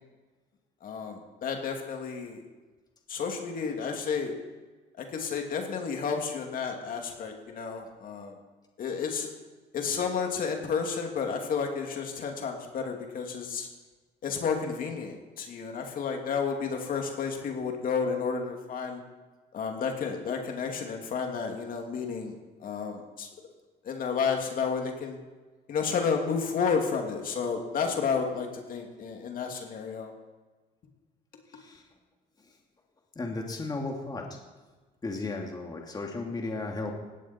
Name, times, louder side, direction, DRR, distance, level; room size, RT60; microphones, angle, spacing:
voice 1, 0.8-2.4 3.1-4.3 5.0-8.4 8.8-9.3 9.7-13.7 14.2-19.0 19.5-23.3 23.8-25.2 25.7-30.1, left 5 dB, 55° left, 2 dB, 2.8 m, -31 dB
voice 2, 33.2-34.2 35.0-36.9, left 3 dB, 25° left, 1 dB, 2.7 m, -34 dB
18.5 x 16.5 x 4.5 m, 1.3 s
cardioid pair, 110°, 17 cm